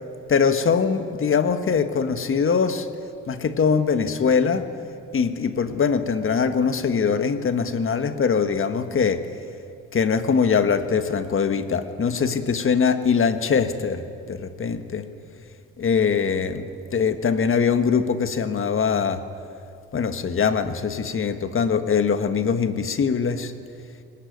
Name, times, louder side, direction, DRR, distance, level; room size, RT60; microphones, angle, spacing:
voice 1, 0.3-2.9 3.3-4.7 5.1-9.2 9.9-14.0 14.3-15.1 15.8-16.6 16.9-19.2 19.9-23.5, left 6 dB, 45° left, 9 dB, 1.6 m, -22 dB
22.0 x 19.0 x 9.4 m, 2.5 s
cardioid pair, 90°, 30 cm